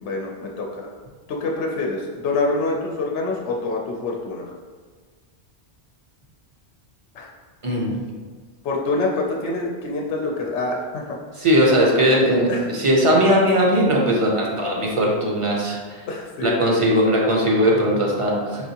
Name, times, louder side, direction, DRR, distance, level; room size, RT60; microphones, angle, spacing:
voice 1, 0.0-0.9 1.3-4.5 7.1-7.3 8.6-11.2 12.5-12.7 16.1-16.9, left 3 dB, 85° left, 0 dB, 0.9 m, -26 dB
voice 2, 7.6-8.0 11.4-15.8 16.4-18.7, equal, 35° right, -2 dB, 0.6 m, -19 dB
4.9 x 3.4 x 2.8 m, 1.5 s
omnidirectional pair, 1.1 m